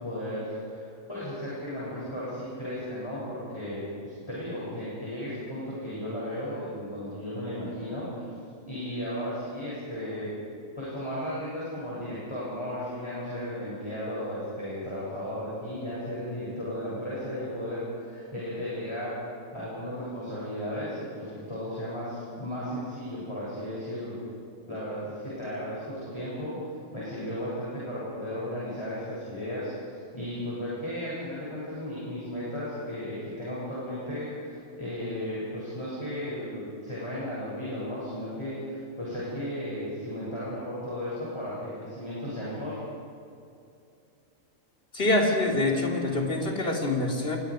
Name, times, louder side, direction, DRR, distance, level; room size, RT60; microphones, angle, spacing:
voice 1, 0.0-8.3 8.6-10.3 10.8-19.2 19.5-24.2 24.7-26.5 26.9-42.8, equal, 20° left, -8 dB, 7.9 m, -35 dB
voice 2, 44.9-47.4, left 2 dB, 50° left, -1 dB, 3.5 m, -25 dB
29.0 x 24.5 x 5.2 m, 2.6 s
omnidirectional pair, 1.4 m